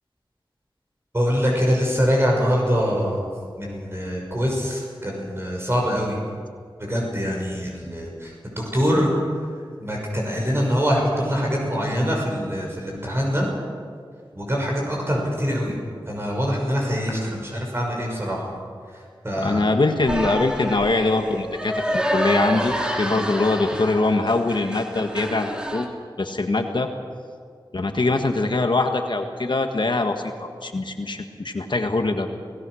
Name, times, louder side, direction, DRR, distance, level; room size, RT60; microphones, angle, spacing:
voice 1, 1.1-3.3 3.6-6.2 6.9-9.1 9.8-13.5 14.3-15.8 16.1-18.5 18.9-19.7, equal, 30° right, -2 dB, 6.1 m, -24 dB
voice 2, 19.4-25.9 26.2-26.9 27.7-32.3, left 2 dB, 60° left, 5 dB, 1.7 m, -23 dB
sound 1, 20.1-25.9, equal, 10° right, 2.8 m, -28 dB
27.0 x 18.0 x 6.4 m, 2.1 s
wide cardioid pair, 65°, 9 cm